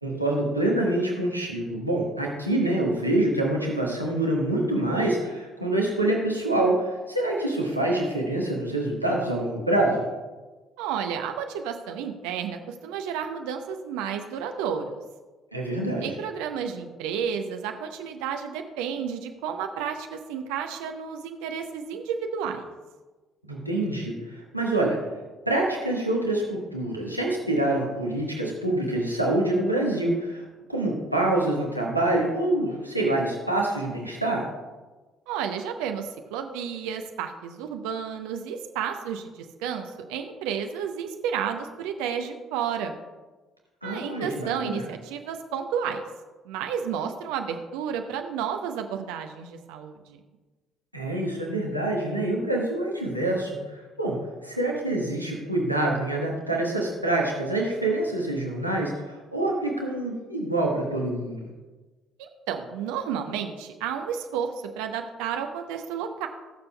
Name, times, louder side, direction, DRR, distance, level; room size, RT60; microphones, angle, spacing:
voice 1, 0.0-10.0 15.5-16.1 23.4-25.0 25.5-34.5 43.8-44.8 50.9-61.4, right 1 dB, 90° right, -3 dB, 1.3 m, -26 dB
voice 2, 10.8-15.0 16.0-22.7 35.3-43.0 43.8-46.0 46.4-50.2 62.2-66.3, right 7 dB, 65° right, 6 dB, 0.7 m, -31 dB
19.0 x 6.8 x 2.3 m, 1.2 s
figure-of-eight pair, 50°, 0 cm